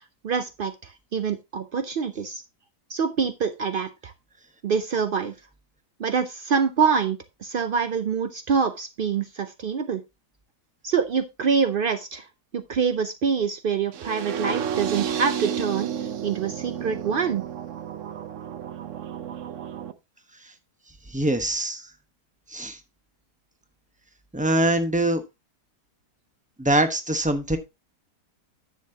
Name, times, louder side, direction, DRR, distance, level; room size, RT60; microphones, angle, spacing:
voice 1, 0.2-2.4 2.9-4.1 4.6-5.3 6.0-10.0 10.8-12.3 12.5-17.4, right 6 dB, 85° right, 10 dB, 0.4 m, -25 dB
sound 1, 13.9-19.9, right 8 dB, 60° right, 0.9 m, -31 dB
voice 2, 21.1-21.8 22.5-22.8 24.3-25.2 26.6-27.6, right 1 dB, 5° right, 8 dB, 0.8 m, -23 dB
10.0 x 7.5 x 2.8 m, 0.23 s
omnidirectional pair, 1.7 m